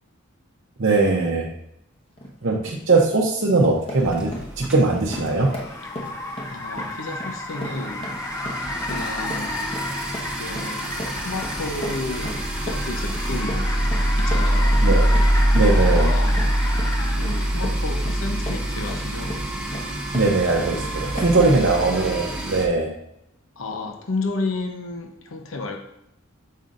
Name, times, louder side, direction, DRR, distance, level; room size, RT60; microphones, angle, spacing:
voice 1, 0.8-1.5 2.4-5.5 14.8-15.0 15.5-16.1 20.1-22.9, right 3 dB, 60° right, -3 dB, 0.7 m, -20 dB
sound 1, 2.2-2.4 2.8-3.2 3.5-20.8 21.2-21.5, equal, 30° left, 1.1 m, -37 dB
Car, 3.9-17.8, left 2 dB, 15° left, 0.5 m, -33 dB
sound 2, 4.0-5.8 6.0-6.3 6.6-6.7 6.9-22.6, right 1 dB, 5° right, 1.0 m, -24 dB
voice 2, 6.5-8.1 8.8-9.7 10.4-10.8 11.2-13.7 14.2-14.8 15.8-16.5 17.2-19.4 21.5-21.6 23.6-25.8, left 2 dB, 80° left, 3 dB, 0.8 m, -31 dB
7.4 x 5.4 x 2.5 m, 0.82 s
head